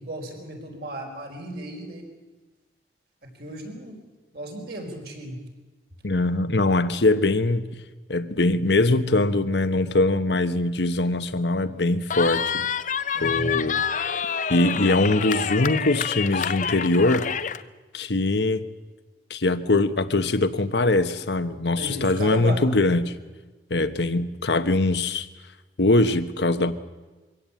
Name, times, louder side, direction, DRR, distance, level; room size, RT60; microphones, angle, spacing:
voice 1, 0.0-2.1 3.4-4.0 4.3-5.4 13.1-13.5 21.8-22.6, right 1 dB, 60° right, 2 dB, 4.9 m, -34 dB
voice 2, 6.0-7.7 8.1-12.6 13.2-13.8 14.5-17.3 17.9-18.6 19.3-23.1 23.7-25.3 25.8-26.7, left 2 dB, 75° left, 11 dB, 1.1 m, -22 dB
Cheering, 12.1-17.6, left 7 dB, 45° left, 0.6 m, -27 dB
24.0 x 17.0 x 8.6 m, 1.2 s
head